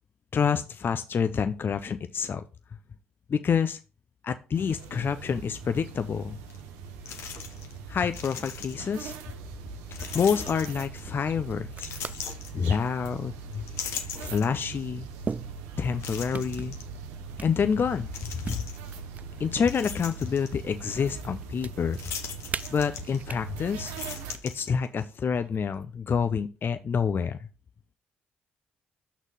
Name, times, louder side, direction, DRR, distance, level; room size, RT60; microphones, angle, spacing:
voice 1, 0.3-2.4 3.3-3.8 4.2-6.4 7.9-9.1 10.1-11.9 12.5-13.6 14.2-15.1 15.8-16.8 17.4-18.1 18.5-18.6 19.4-22.0 22.7-24.0 24.4-27.5, left 6 dB, 50° left, 10 dB, 0.5 m, -27 dB
sound 1, 4.5-24.3, right 5 dB, 85° right, 0.7 m, -41 dB
sound 2, 6.5-6.6 7.1-7.8 8.0-9.0 9.9-11.2 11.7-13.1 13.5-14.8 15.3-15.4 16.0-16.8 18.1-18.9 19.4-20.5 21.9-23.5 23.8-25.0, left 7 dB, 65° left, 1.1 m, -39 dB
sound 3, 10.4-10.7 11.5-12.4 12.8-13.1 14.1-14.2 15.2-16.0 16.3-16.8 17.4-18.0 18.4-19.8 20.2-20.9 21.2-21.7 22.5-23.4 24.1-24.4 25.5-26.0, right 5 dB, 35° right, 0.3 m, -39 dB
6.2 x 4.0 x 5.5 m, 0.31 s
hypercardioid pair, 50°, 5 cm